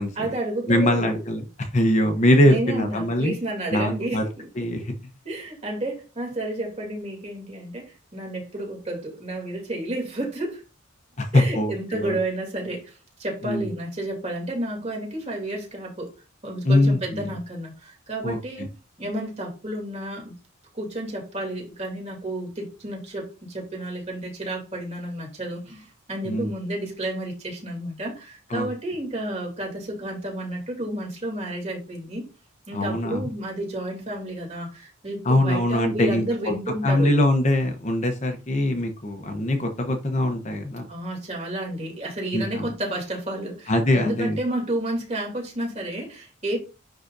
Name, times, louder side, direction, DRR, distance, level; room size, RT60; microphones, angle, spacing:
voice 1, 0.2-1.2 2.4-4.7 5.2-10.6 11.3-16.1 16.4-18.7 19.0-20.4 20.7-32.3 32.7-37.1 40.9-46.6, right 1 dB, 35° right, 2.7 m, -31 dB
voice 2, 0.7-1.4 1.7-3.3 3.7-4.2 4.6-4.9 11.2-11.7 12.0-12.2 13.4-13.7 16.6-17.3 18.2-18.7 26.3-26.5 28.5-28.7 32.7-33.3 35.3-36.2 36.8-40.9 42.3-42.7 43.7-44.4, left 1 dB, 35° left, 0.8 m, -22 dB
9.9 x 3.8 x 2.6 m
head